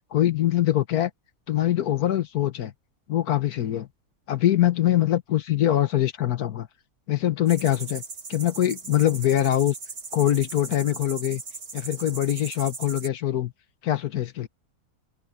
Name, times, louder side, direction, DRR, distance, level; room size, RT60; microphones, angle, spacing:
voice 1, 0.1-1.1 1.5-2.7 3.1-3.9 4.3-6.7 7.1-8.0 8.3-9.7 10.1-11.4 11.7-13.5 13.8-14.5, left 12 dB, 80° left, 1.5 m, -23 dB
sound 1, 7.5-13.1, right 4 dB, 80° right, 2.6 m, -39 dB
open air
omnidirectional pair, 1.6 m